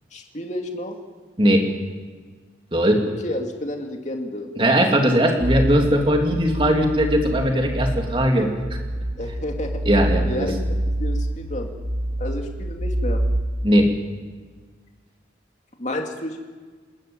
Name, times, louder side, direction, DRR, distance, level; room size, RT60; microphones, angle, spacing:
voice 1, 0.1-0.9 3.2-4.5 9.2-9.7 10.2-10.5 11.0-11.7 12.2-13.2 15.8-16.4, left 1 dB, 40° left, 3 dB, 2.5 m, -30 dB
voice 2, 2.7-3.0 4.6-8.5 9.9-10.5 13.6-13.9, equal, 25° right, 2 dB, 2.8 m, -19 dB
sound 1, 5.4-13.4, right 1 dB, 45° right, 6.6 m, -26 dB
28.5 x 13.5 x 8.9 m, 1.5 s
head